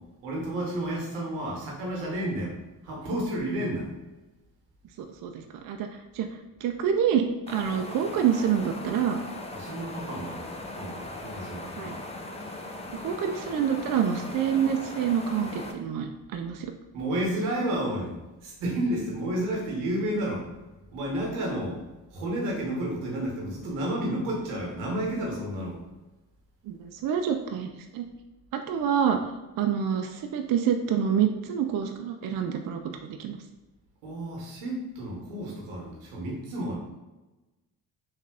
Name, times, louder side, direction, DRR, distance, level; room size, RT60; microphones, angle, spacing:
voice 1, 0.2-2.6 2.8-3.9 9.5-12.0 16.9-18.2 18.4-20.5 20.9-21.8 22.1-25.8 34.0-36.8, right 1 dB, 85° right, -1 dB, 1.0 m, -31 dB
voice 2, 5.0-5.9 6.1-6.3 6.6-9.2 11.8-11.9 13.0-16.7 26.7-28.1 28.5-29.2 29.6-33.4, right 8 dB, 50° right, 5 dB, 0.5 m, -27 dB
sound 1, 7.5-15.7, left 2 dB, 15° left, 0.5 m, -39 dB
3.2 x 2.3 x 3.5 m, 1.1 s
hypercardioid pair, 50°, 44 cm